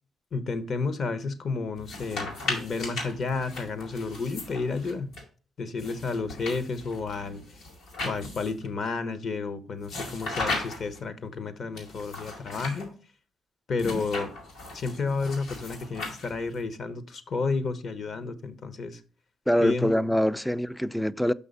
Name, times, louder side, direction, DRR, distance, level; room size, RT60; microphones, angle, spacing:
voice 1, 0.3-5.1 5.6-7.4 8.0-12.9 13.7-14.3 14.7-19.0 19.6-19.9, left 4 dB, 50° left, 1.1 m, -31 dB
sound 1, 1.8-5.2 5.8-8.7 9.8-11.0 11.8-12.8 13.8-16.6, left 2 dB, 90° left, 4.6 m, -37 dB
voice 2, 19.5-21.3, equal, 5° left, 0.4 m, -24 dB
6.3 x 5.5 x 5.4 m
cardioid pair, 90°, 0 cm